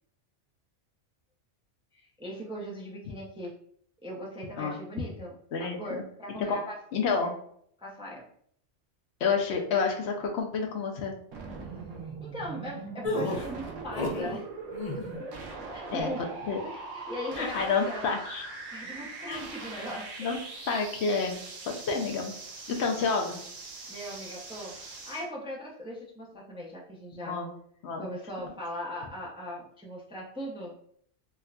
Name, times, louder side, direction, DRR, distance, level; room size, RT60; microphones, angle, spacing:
voice 1, 1.9-3.5 4.0-5.3 5.6-6.8 7.2-7.3 7.8-8.2 12.2-14.5 15.2-15.3 15.6-16.3 16.6-18.1 18.7-20.1 23.9-24.8 25.0-27.4 28.0-30.7, equal, 5° right, -3 dB, 0.4 m, -39 dB
voice 2, 5.5-6.0 6.5-6.6 6.9-7.3 9.2-11.2 15.9-16.1 16.5-16.6 17.4-18.4 19.3-19.5 20.2-20.4 20.7-22.3 22.7-23.4 27.1-27.5 27.8-28.0, left 5 dB, 70° left, 1 dB, 0.8 m, -29 dB
sound 1, 11.3-25.3, right 3 dB, 90° right, 1.1 m, -41 dB
sound 2, 13.0-14.4 14.7-15.2, left 2 dB, 45° left, 0.5 m, -31 dB
4.4 x 2.2 x 2.4 m, 0.63 s
omnidirectional pair, 1.2 m